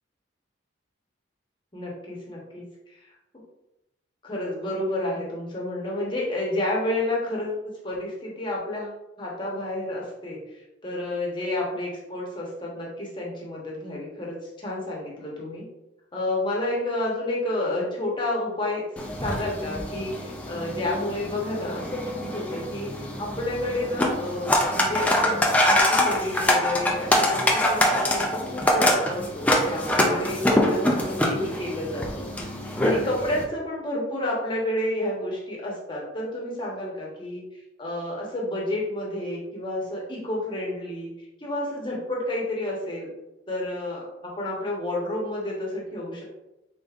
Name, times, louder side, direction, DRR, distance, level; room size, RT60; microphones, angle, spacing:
voice 1, 1.7-3.0 4.2-10.4 10.8-15.6 16.1-18.8 19.2-22.9 23.2-25.4 25.7-32.3 32.8-37.4 37.8-41.1 41.4-43.1 43.5-46.2, left 1 dB, 25° left, -3 dB, 1.0 m, -30 dB
sound 1, 19.0-33.4, left 1 dB, 5° left, 0.4 m, -24 dB
5.0 x 3.7 x 2.4 m, 0.92 s
head